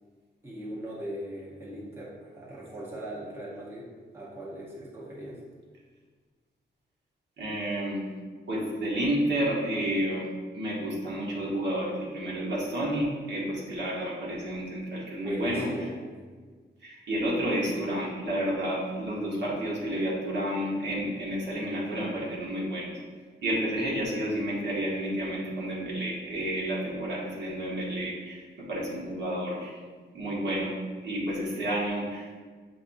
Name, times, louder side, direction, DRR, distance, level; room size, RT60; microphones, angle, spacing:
voice 1, 0.4-3.9 4.1-5.4 15.2-15.9, equal, 10° right, -7 dB, 0.9 m, -38 dB
voice 2, 7.4-8.0 8.5-10.3 10.5-15.7 16.8-22.9 23.4-29.7 30.1-30.7 31.0-32.4, right 1 dB, 65° right, -5 dB, 1.2 m, -30 dB
6.9 x 2.6 x 2.6 m, 1.5 s
wide cardioid pair, 145°, 19 cm